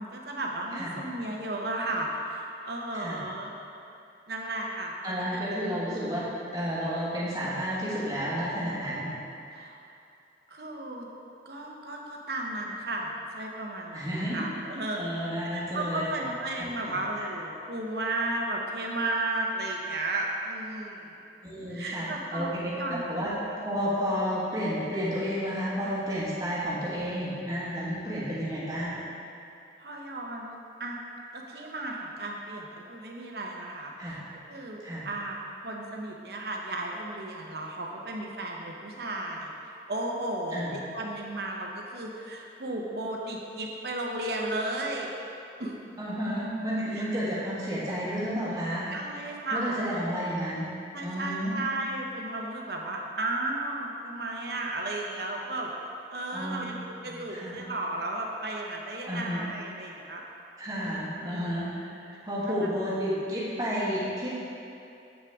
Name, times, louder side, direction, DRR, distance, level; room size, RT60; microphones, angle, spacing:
voice 1, 0.0-3.5 4.3-5.4 9.5-9.8 10.5-11.1 11.5-21.1 21.7-23.0 29.8-31.0 31.3-34.2 34.5-35.4 35.6-45.1 45.6-45.8 46.9-47.0 48.9-49.9 50.9-60.2 60.8-61.5 62.5-62.7, right 2 dB, 65° right, 0 dB, 0.8 m, -34 dB
voice 2, 5.0-9.1 13.9-14.4 14.9-16.0 16.9-17.0 21.4-22.1 22.3-29.0 34.0-34.2 34.8-35.0 40.5-40.7 46.0-48.9 49.5-50.7 51.0-51.6 56.3-56.7 57.0-57.6 59.1-59.4 60.6-64.3, equal, 20° right, -9 dB, 1.6 m, -31 dB
7.5 x 5.8 x 3.6 m, 2.6 s
head